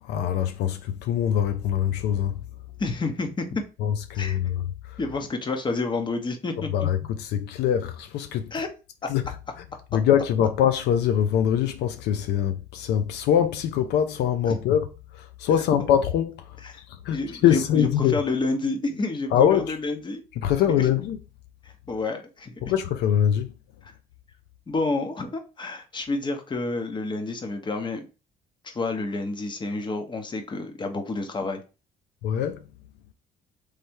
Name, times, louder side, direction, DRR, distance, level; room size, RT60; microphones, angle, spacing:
voice 1, 0.0-2.4 3.8-4.6 4.8-5.0 6.7-8.5 9.1-9.3 9.9-14.9 15.1-18.1 19.3-19.7 20.4-21.2 22.6-23.5 32.2-32.6, left 9 dB, 80° left, 0.5 m, -23 dB
voice 2, 2.8-3.6 4.1-4.4 5.0-6.9 8.5-8.7 9.0-9.1 14.5-14.6 16.6-16.8 17.1-20.2 20.8-20.9 21.6-22.6 23.8-23.9 24.7-28.1 28.6-31.6, left 3 dB, 25° left, 0.9 m, -29 dB
3.3 x 3.3 x 4.5 m
cardioid pair, 110°, 17 cm